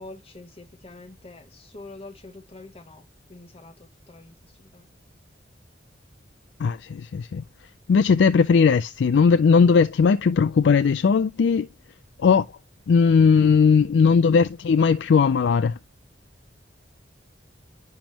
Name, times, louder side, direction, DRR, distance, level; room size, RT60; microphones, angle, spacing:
voice 1, 0.0-5.0, left 2 dB, 35° left, 1.0 m, -45 dB
voice 2, 6.6-7.4 7.9-11.7 12.2-12.5 12.9-15.8, left 5 dB, 75° left, 0.4 m, -18 dB
10.5 x 3.5 x 2.9 m
head